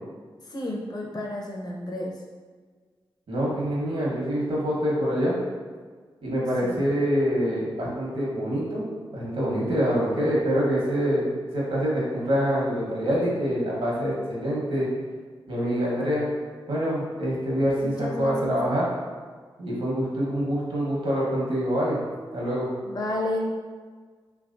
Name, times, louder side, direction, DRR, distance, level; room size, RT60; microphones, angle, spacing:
voice 1, 0.5-2.1 6.6-6.8 17.8-18.5 22.8-23.5, left 1 dB, 45° left, -2 dB, 0.7 m, -31 dB
voice 2, 3.3-5.3 6.2-8.8 9.1-14.9 15.5-16.3 16.7-18.9 19.6-22.0 22.3-22.7, equal, 75° right, -5 dB, 1.2 m, -25 dB
3.2 x 3.0 x 2.6 m, 1.5 s
cardioid pair, 45°, 10 cm